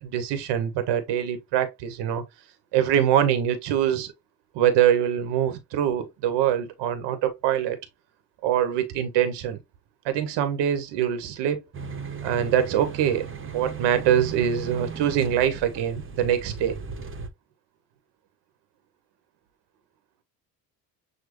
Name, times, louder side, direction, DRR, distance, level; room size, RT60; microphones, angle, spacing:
voice 1, 0.0-2.2 2.7-4.1 4.5-7.8 8.4-9.6 10.0-11.6 12.2-13.3 13.5-16.7, right 10 dB, 70° right, 0.9 m, -24 dB
sound 1, 11.7-17.3, right 6 dB, 30° right, 1.0 m, -37 dB
6.3 x 2.2 x 2.9 m
supercardioid pair, 65°, 42 cm